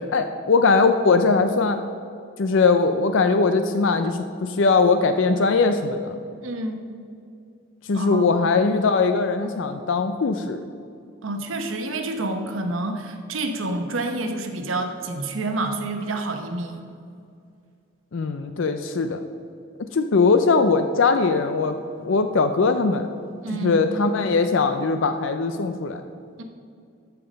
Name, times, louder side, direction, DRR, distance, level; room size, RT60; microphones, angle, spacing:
voice 1, 0.1-1.8 2.4-6.1 7.9-10.6 18.1-19.2 19.8-21.8 22.0-23.1 23.6-26.0, left 4 dB, 65° left, 8 dB, 0.5 m, -20 dB
voice 2, 6.4-6.8 7.9-8.3 11.2-16.9 22.0-22.1 23.4-23.8 26.4-26.5, right 2 dB, 70° right, 5 dB, 1.0 m, -28 dB
14.0 x 5.8 x 5.2 m, 2.4 s
head